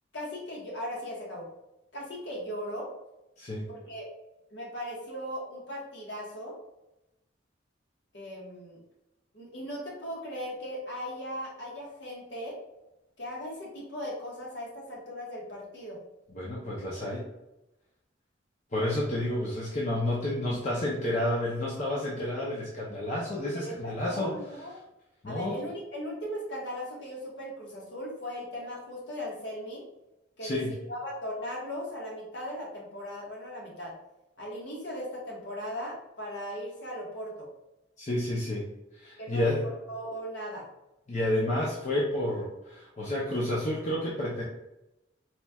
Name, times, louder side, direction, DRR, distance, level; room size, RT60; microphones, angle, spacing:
voice 1, 0.1-1.5 1.9-2.9 3.7-4.0 4.5-6.5 8.1-8.8 9.3-12.6 13.2-16.0 23.5-24.8 25.2-29.8 30.4-33.9 34.4-37.5 39.2-40.6, equal, 60° left, -3 dB, 1.2 m, -38 dB
voice 2, 16.3-17.2 18.7-24.3 25.2-25.5 30.4-30.7 38.0-38.6 39.0-39.6 41.1-44.4, left 1 dB, 35° left, -5 dB, 0.6 m, -30 dB
4.2 x 3.0 x 2.3 m, 0.92 s
head